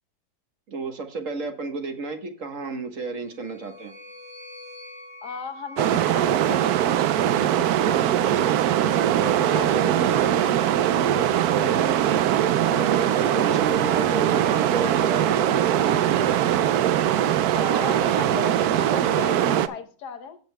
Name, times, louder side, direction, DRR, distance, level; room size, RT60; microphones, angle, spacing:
voice 1, 0.7-3.9 8.8-10.4 10.8-12.0 12.7-16.7, right 3 dB, 50° right, 6 dB, 1.5 m, -32 dB
sound 1, 3.0-7.3, left 1 dB, 10° right, 1.9 m, -45 dB
voice 2, 5.2-8.0 9.5-9.8 11.8-11.9 17.5-20.4, left 6 dB, 70° left, 9 dB, 1.5 m, -36 dB
sound 2, 5.8-19.7, right 11 dB, 70° right, 1.1 m, -21 dB
15.5 x 7.6 x 2.2 m, 0.42 s
omnidirectional pair, 1.8 m